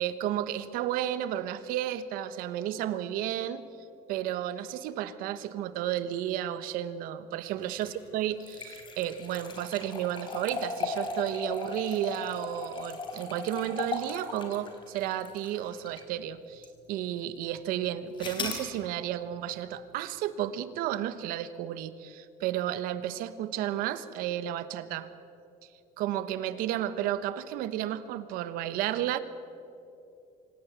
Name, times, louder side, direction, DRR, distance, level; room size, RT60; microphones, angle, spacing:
voice 1, 0.0-3.6 4.1-25.1 26.0-29.2, right 11 dB, 75° right, 13 dB, 1.2 m, -32 dB
sound 1, 7.7-16.1 16.6-16.7 18.2-18.7, left 4 dB, 35° left, 3.8 m, -37 dB
25.5 x 17.0 x 8.2 m, 2.7 s
cardioid pair, 140°, 15 cm